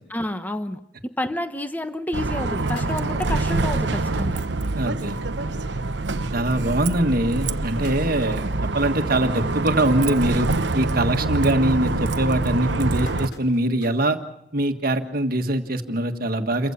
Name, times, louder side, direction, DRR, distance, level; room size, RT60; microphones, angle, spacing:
voice 1, 0.1-4.4, left 1 dB, 10° left, 10 dB, 1.1 m, -29 dB
Bus, 2.1-13.3, right 3 dB, 70° right, 0.9 m, -25 dB
sound 1, 2.7-3.6 4.1-4.2 4.5-4.6 4.9-5.1 5.8-5.9 6.4-6.5 7.3-10.1 10.5-10.8 11.2-11.6 12.2-14.2 14.6-14.7 15.9-16.0, left 2 dB, 65° left, 5.2 m, -47 dB
voice 2, 4.8-5.2 6.3-10.5 10.7-14.2 14.5-16.7, right 1 dB, 50° right, 7 dB, 1.6 m, -23 dB
28.5 x 15.5 x 7.0 m, 0.80 s
head